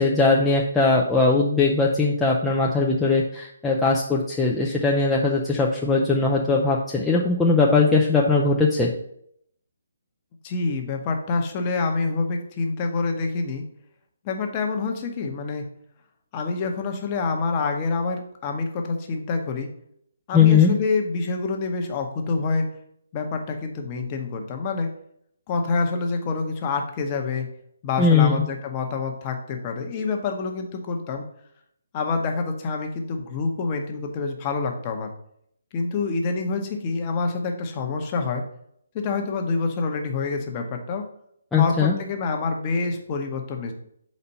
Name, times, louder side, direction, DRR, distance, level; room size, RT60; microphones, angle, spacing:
voice 1, 0.0-8.9 20.3-20.7 28.0-28.4 41.5-41.9, left 4 dB, 5° left, -4 dB, 0.5 m, -20 dB
voice 2, 10.4-13.6 14.2-15.7 16.3-19.7 20.3-22.7 23.1-24.9 25.5-27.5 27.8-31.2 31.9-35.1 35.7-38.4 38.9-41.0 41.6-43.7, left 4 dB, 25° left, 3 dB, 0.9 m, -27 dB
4.2 x 4.2 x 5.5 m, 0.70 s
hypercardioid pair, 155°, 0 cm